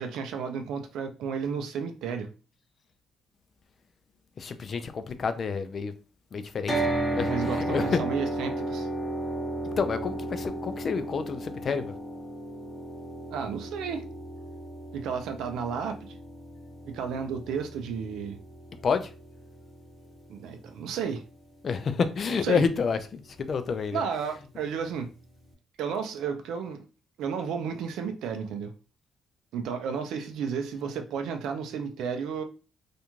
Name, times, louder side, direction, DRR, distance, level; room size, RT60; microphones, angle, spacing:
voice 1, 0.0-2.3 7.3-8.9 13.3-14.1 14.9-16.2 16.9-18.4 20.3-21.2 22.4-22.6 23.9-25.1 25.8-26.8 27.2-28.7 29.5-32.4, right 6 dB, 85° right, 0.5 m, -32 dB
voice 2, 4.4-5.9 6.3-6.8 7.1-8.0 9.8-11.9 18.8-19.1 21.6-24.0, left 5 dB, 40° left, 0.3 m, -29 dB
sound 1, 6.7-20.8, right 1 dB, 5° left, 0.6 m, -34 dB
2.5 x 2.2 x 3.0 m
cardioid pair, 145°, 0 cm